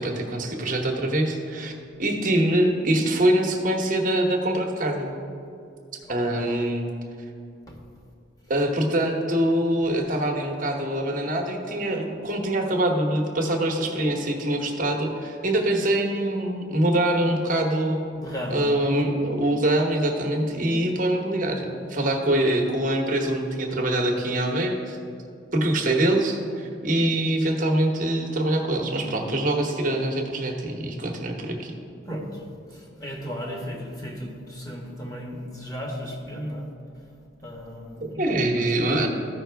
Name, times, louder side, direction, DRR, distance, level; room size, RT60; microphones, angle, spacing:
voice 1, 0.0-1.7 2.0-5.1 6.1-6.9 8.5-18.0 18.5-25.0 25.5-31.7 38.2-39.1, right 1 dB, 45° right, 2 dB, 1.1 m, -24 dB
voice 2, 6.1-6.4 7.7-7.8 18.1-18.6 32.1-32.4 32.7-36.7 37.4-38.2 38.8-39.1, equal, 20° left, -1 dB, 1.4 m, -35 dB
14.0 x 5.7 x 3.4 m, 2.5 s
head